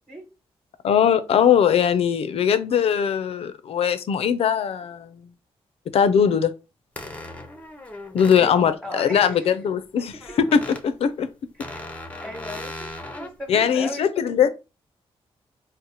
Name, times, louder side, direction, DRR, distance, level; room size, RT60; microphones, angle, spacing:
voice 1, 0.8-5.2 5.9-6.5 8.1-11.3 13.5-14.5, left 8 dB, 70° left, 0.4 m, -20 dB
sound 1, 7.0-8.5 10.2-10.8 11.6-13.3, left 1 dB, 15° left, 0.6 m, -37 dB
voice 2, 8.2-9.5 10.0-10.4 11.6-11.8 12.2-14.1, left 1 dB, 5° right, 1.1 m, -37 dB
4.0 x 2.0 x 2.8 m
cardioid pair, 85°, 10 cm